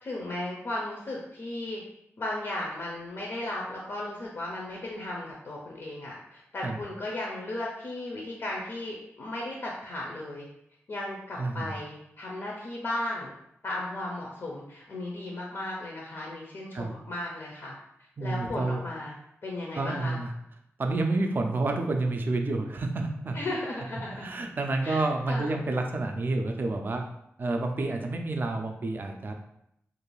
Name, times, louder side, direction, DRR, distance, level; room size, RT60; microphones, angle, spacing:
voice 1, 0.0-1.8 2.2-10.5 10.9-13.3 13.6-17.7 18.2-19.1 19.4-20.2 23.3-24.3 24.8-25.5, left 1 dB, 55° left, -2 dB, 0.5 m, -35 dB
voice 2, 11.4-11.7 16.7-16.9 18.2-18.8 19.7-20.3 20.8-23.4 24.1-27.0 27.4-29.3, right 2 dB, 40° right, 4 dB, 0.3 m, -29 dB
2.5 x 2.3 x 3.1 m, 0.77 s
wide cardioid pair, 140°, 5 cm